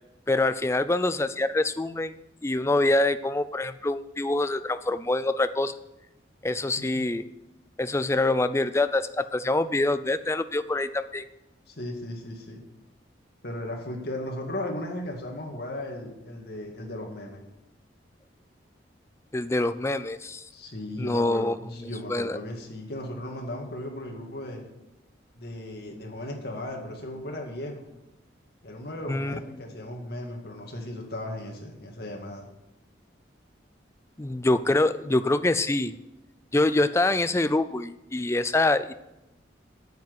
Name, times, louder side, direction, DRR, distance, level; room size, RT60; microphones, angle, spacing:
voice 1, 0.3-2.1 2.4-5.8 6.4-7.2 7.8-11.2 19.3-20.4 21.0-21.5 22.1-22.4 29.1-29.3 34.2-35.9 36.5-38.9, left 2 dB, 15° left, 12 dB, 0.4 m, -25 dB
voice 2, 11.7-12.6 13.4-17.4 20.5-24.6 25.3-27.9 28.6-32.5, left 1 dB, 55° left, 1 dB, 2.2 m, -36 dB
9.1 x 7.3 x 8.2 m, 0.92 s
head